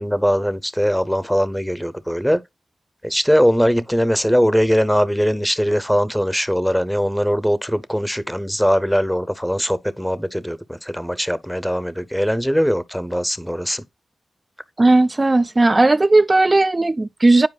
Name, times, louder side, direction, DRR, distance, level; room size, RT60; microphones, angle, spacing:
voice 1, 0.0-2.4 3.0-13.8, equal, ahead, 0.6 m, -20 dB
voice 2, 14.8-17.5, right 2 dB, 35° right, 0.3 m, -15 dB
9.7 x 4.5 x 2.3 m
cardioid pair, 45°, 0 cm